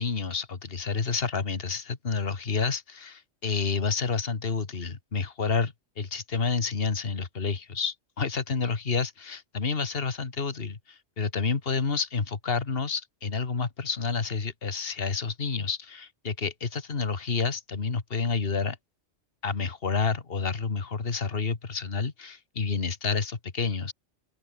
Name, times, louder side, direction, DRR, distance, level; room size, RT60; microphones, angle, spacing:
voice 1, 0.0-18.8 19.4-23.9, left 5 dB, 50° left, 2.0 m, -29 dB
open air
omnidirectional pair, 1.2 m